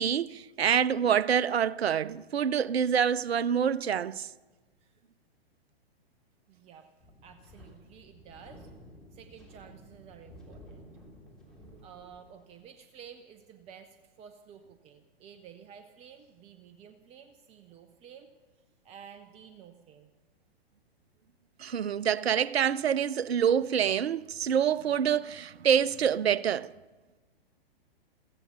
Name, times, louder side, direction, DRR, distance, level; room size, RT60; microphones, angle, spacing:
voice 1, 0.0-4.3 21.6-26.7, right 8 dB, 80° right, 0.5 m, -26 dB
voice 2, 6.5-6.9 7.2-8.7 9.1-10.9 11.8-18.3 18.8-20.1, right 8 dB, 20° right, 0.7 m, -52 dB
Wind, 7.0-12.6, equal, ahead, 3.5 m, -53 dB
15.0 x 15.0 x 5.8 m
figure-of-eight pair, 110°, 31 cm